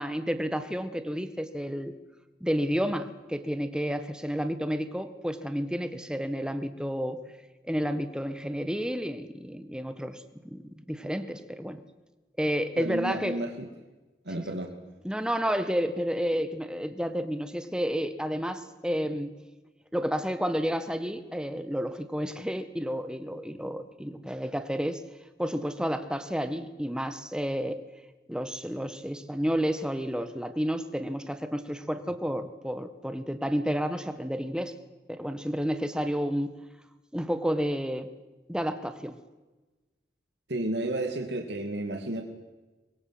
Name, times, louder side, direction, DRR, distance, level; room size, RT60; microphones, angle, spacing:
voice 1, 0.0-1.9 2.4-7.2 7.7-10.6 10.9-11.8 12.4-13.4 15.0-19.3 19.9-25.0 25.4-27.8 28.3-34.7 35.1-36.5 37.1-38.1 38.5-39.2, equal, 5° right, 10 dB, 1.5 m, -30 dB
voice 2, 12.8-13.7 14.2-14.7 40.5-42.2, right 1 dB, 80° right, 4 dB, 2.5 m, -32 dB
24.5 x 22.0 x 7.9 m, 1.2 s
head